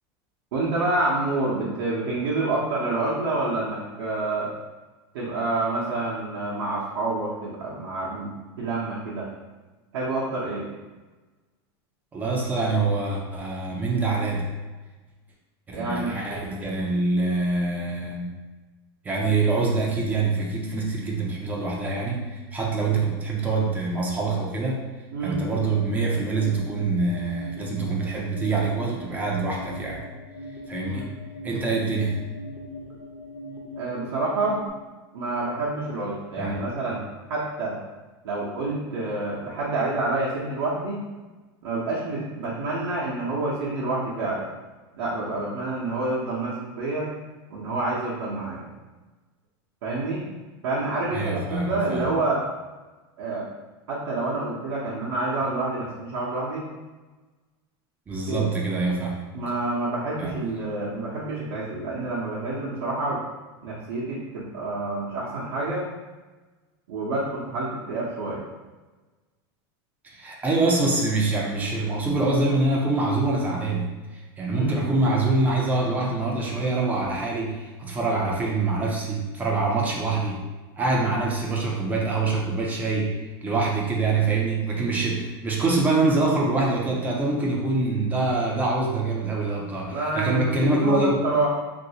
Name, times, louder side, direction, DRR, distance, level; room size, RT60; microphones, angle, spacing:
voice 1, 0.5-4.5 5.1-8.3 8.6-9.3 9.9-10.7 15.7-16.2 25.1-25.4 30.8-31.0 33.8-34.6 35.1-37.0 37.3-37.8 38.2-41.1 41.6-44.5 44.9-47.1 47.5-48.7 49.8-50.2 50.6-52.4 53.2-53.4 53.9-56.7 58.3-58.5 59.3-63.2 63.6-65.9 66.9-68.4 74.5-74.8 84.3-84.4 89.9-91.5, right 2 dB, 75° right, -7 dB, 0.8 m, -28 dB
voice 2, 12.1-14.5 15.7-18.3 19.0-22.2 22.5-24.8 25.2-30.0 30.7-31.1 31.4-32.2 36.4-36.6 51.1-52.2 58.1-59.2 60.2-60.3 70.0-73.9 74.4-80.4 80.8-83.1 83.4-91.2, right 3 dB, 10° right, -2 dB, 0.4 m, -25 dB
sound 1, 25.3-34.7, left 1 dB, 45° left, 0.6 m, -41 dB
3.1 x 2.6 x 2.8 m, 1.2 s
supercardioid pair, 160°, 13 cm